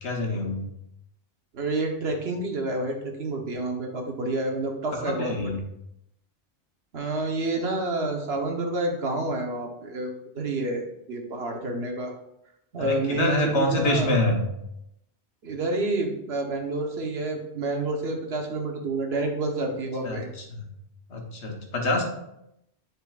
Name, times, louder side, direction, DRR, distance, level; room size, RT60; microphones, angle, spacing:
voice 1, 0.0-0.6 4.9-5.6 12.8-14.4 20.0-20.6 21.1-22.0, left 1 dB, 90° left, 2 dB, 1.4 m, -26 dB
voice 2, 1.5-5.3 6.9-12.1 12.7-14.1 15.4-20.3, right 2 dB, 70° right, 2 dB, 1.3 m, -29 dB
10.5 x 4.4 x 2.4 m, 0.82 s
omnidirectional pair, 1.1 m